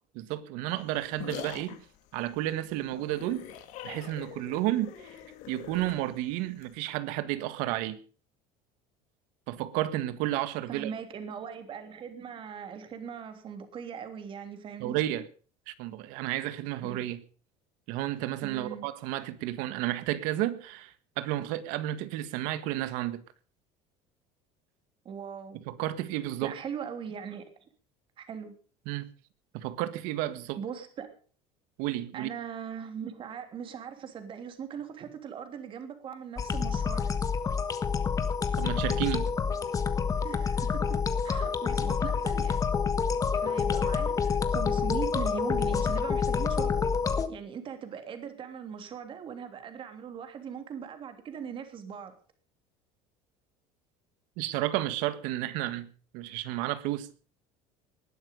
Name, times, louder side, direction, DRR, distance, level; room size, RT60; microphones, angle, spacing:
voice 1, 0.1-1.8 2.1-3.5 3.8-4.9 5.5-8.0 9.5-10.9 14.8-15.2 15.7-17.2 17.9-23.2 25.7-26.5 28.8-29.1 29.5-30.6 31.8-32.3 38.6-39.3 54.4-55.9 56.1-57.1, right 14 dB, 75° right, 1.7 m, -32 dB
sound 1, 0.7-6.7, left 10 dB, 60° left, 2.8 m, -44 dB
voice 2, 10.7-15.0 16.8-17.0 18.4-18.9 25.0-25.6 26.4-27.5 28.2-28.5 30.6-31.1 32.1-37.2 40.2-42.6 43.3-46.8 47.3-52.1, right 7 dB, 40° right, 3.1 m, -40 dB
sound 2, 36.4-47.3, left 6 dB, 25° left, 1.5 m, -28 dB
19.5 x 11.5 x 5.4 m
cardioid pair, 140°, 14 cm